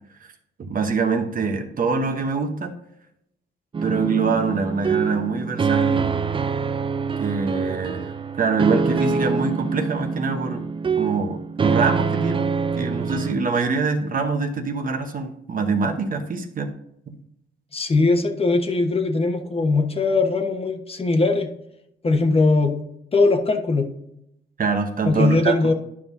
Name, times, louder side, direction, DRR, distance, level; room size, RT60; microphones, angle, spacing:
voice 1, 0.6-2.8 3.8-6.1 7.2-10.6 11.0-12.5 12.7-16.7 17.1-17.2 24.6-25.7, right 4 dB, 45° right, 5 dB, 1.1 m, -24 dB
sound 1, 3.7-13.3, right 5 dB, 25° right, 0.4 m, -25 dB
voice 2, 17.7-21.5 22.0-22.8 23.1-23.9 25.0-25.7, left 3 dB, 30° left, 5 dB, 1.2 m, -20 dB
11.0 x 5.4 x 2.7 m, 0.78 s
cardioid pair, 90°, 20 cm